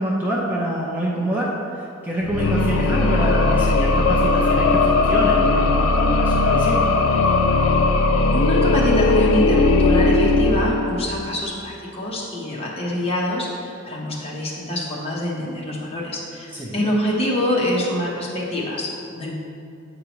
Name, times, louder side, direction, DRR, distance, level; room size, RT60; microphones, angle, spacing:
voice 1, 0.0-6.9 16.5-16.9, right 1 dB, 10° right, -5 dB, 0.5 m, -26 dB
sound 1, 2.2-11.3, left 3 dB, 75° left, 0.4 m, -18 dB
voice 2, 8.3-19.4, left 1 dB, 30° left, -3 dB, 0.9 m, -25 dB
7.9 x 4.7 x 3.0 m, 2.4 s
head